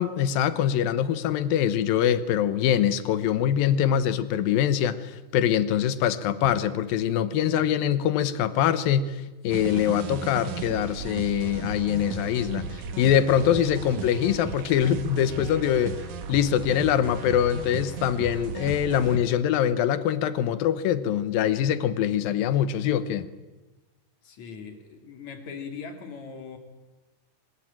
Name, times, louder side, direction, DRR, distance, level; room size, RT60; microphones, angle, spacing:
voice 1, 0.0-16.0 16.3-23.3, left 10 dB, 80° left, 14 dB, 2.8 m, -24 dB
sound 1, 9.5-19.2, right 5 dB, 60° right, 2.9 m, -35 dB
voice 2, 24.2-26.6, left 5 dB, 55° left, 6 dB, 3.6 m, -40 dB
23.0 x 21.0 x 8.9 m, 1.2 s
omnidirectional pair, 4.1 m